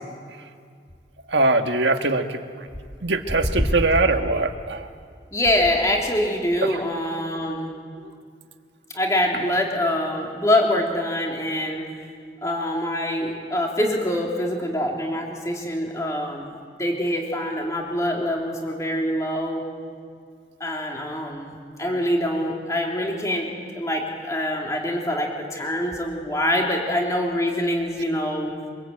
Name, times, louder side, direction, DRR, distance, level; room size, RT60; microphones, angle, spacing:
voice 1, 1.3-2.4 3.0-4.9 6.6-6.8 8.0-8.1, right 2 dB, 85° right, 6 dB, 1.6 m, -22 dB
voice 2, 5.3-7.7 8.9-11.9 12.4-16.5 16.8-19.7 20.6-21.5 21.8-28.5, left 1 dB, 20° left, 0 dB, 3.2 m, -25 dB
24.5 x 23.0 x 8.6 m, 2.1 s
head